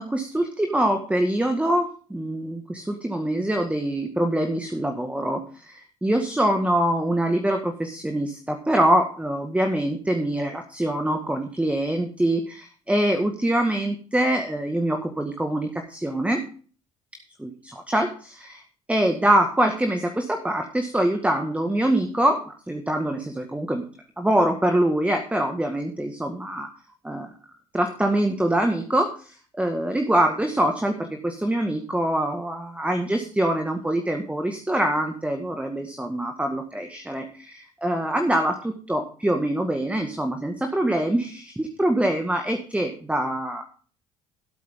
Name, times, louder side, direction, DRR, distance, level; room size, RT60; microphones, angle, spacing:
voice 1, 0.0-16.4 17.4-18.6 18.9-23.9 24.2-26.7 27.0-27.3 27.7-43.6, right 1 dB, 10° right, 4 dB, 1.9 m, -24 dB
16.5 x 8.5 x 3.8 m, 0.41 s
figure-of-eight pair, 55°, 16 cm